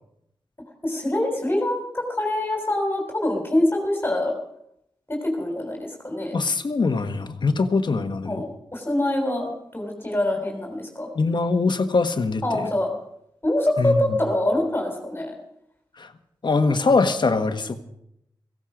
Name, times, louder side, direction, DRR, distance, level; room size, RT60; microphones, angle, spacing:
voice 1, 0.8-4.3 5.1-6.4 8.2-8.4 8.7-11.1 12.4-12.9 13.4-15.3, left 1 dB, 25° left, 2 dB, 3.5 m, -24 dB
voice 2, 6.3-8.4 11.1-12.7 13.8-14.2 16.0-16.1 16.4-17.8, left 3 dB, 60° left, 8 dB, 1.4 m, -22 dB
17.0 x 15.5 x 5.1 m, 0.77 s
cardioid pair, 65°, 9 cm